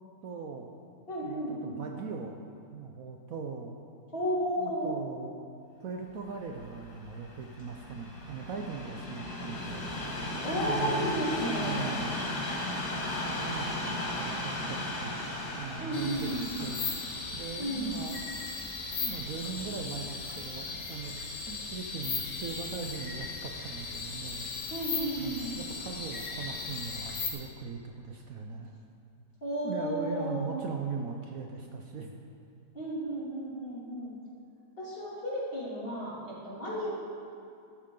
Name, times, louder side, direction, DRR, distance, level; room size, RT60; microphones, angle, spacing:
voice 1, 0.2-0.7 1.2-2.4 2.7-3.7 4.6-5.4 5.8-10.3 10.6-11.2 11.5-12.1 13.0-15.2 15.5-16.9 17.3-18.4 19.0-21.2 21.5-24.7 25.2-28.7 29.6-32.1, right 5 dB, 65° right, 2 dB, 1.1 m, -40 dB
voice 2, 1.1-1.8 4.1-5.0 10.4-11.9 15.8-16.6 17.6-17.9 24.7-25.6 29.4-30.6 32.7-34.1 34.8-36.9, equal, 35° left, -7 dB, 2.8 m, -33 dB
Train, 6.3-19.5 20.2-20.3, left 1 dB, 65° left, 2.2 m, -36 dB
sound 1, 15.9-27.3, left 4 dB, 90° left, 1.9 m, -37 dB
13.0 x 11.0 x 3.8 m, 2.5 s
omnidirectional pair, 1.8 m